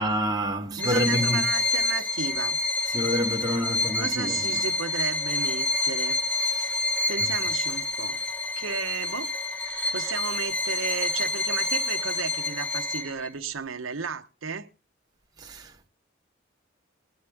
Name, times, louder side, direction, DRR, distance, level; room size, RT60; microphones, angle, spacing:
voice 1, 0.0-1.5 2.9-4.6 6.5-6.8 15.4-15.9, equal, 20° right, 1.4 m, -28 dB
Bowed string instrument, 0.8-13.3, left 2 dB, 5° left, 1.3 m, -28 dB
voice 2, 0.8-2.6 4.0-6.2 7.1-8.2 8.6-9.3 9.6-14.7, right 5 dB, 85° right, 1.0 m, -34 dB
24.0 x 9.4 x 3.5 m
head